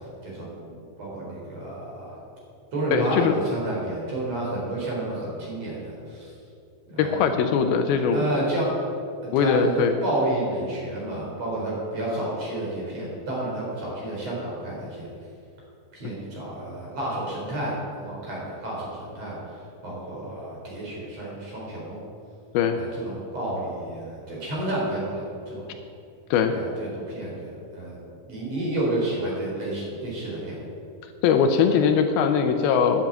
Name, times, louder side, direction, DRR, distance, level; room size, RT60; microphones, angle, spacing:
voice 1, 0.2-0.7 1.0-2.2 2.7-6.3 6.9-7.3 8.1-8.7 9.4-15.1 15.9-19.4 19.8-22.0 22.8-25.7 26.5-30.6, right 1 dB, 40° right, -5 dB, 4.9 m, -30 dB
voice 2, 2.9-3.3 7.0-8.3 9.3-9.9 22.5-22.8 26.3-26.5 31.2-33.0, left 6 dB, 80° left, 6 dB, 2.5 m, -21 dB
10.5 x 8.6 x 9.2 m, 2.6 s
omnidirectional pair, 4.6 m